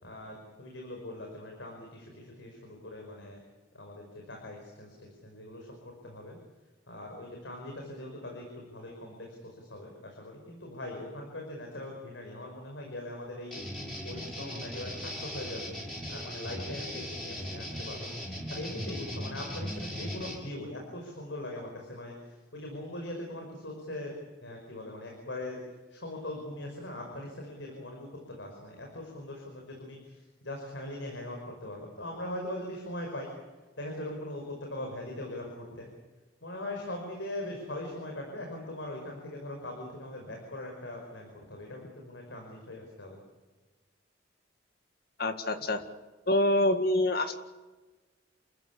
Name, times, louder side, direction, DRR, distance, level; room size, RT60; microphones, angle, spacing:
voice 1, 0.0-3.4 3.7-6.4 6.9-13.5 14.0-15.7 16.1-18.1 18.5-24.1 24.4-25.6 25.9-30.2 30.4-33.3 33.8-35.9 36.4-43.2, left 1 dB, 90° left, 1 dB, 5.6 m, -41 dB
sound 1, 13.5-20.4, equal, 5° left, 6.6 m, -38 dB
voice 2, 45.2-45.8 46.3-47.3, left 1 dB, 55° left, 8 dB, 2.0 m, -26 dB
28.5 x 15.0 x 8.6 m, 1.3 s
head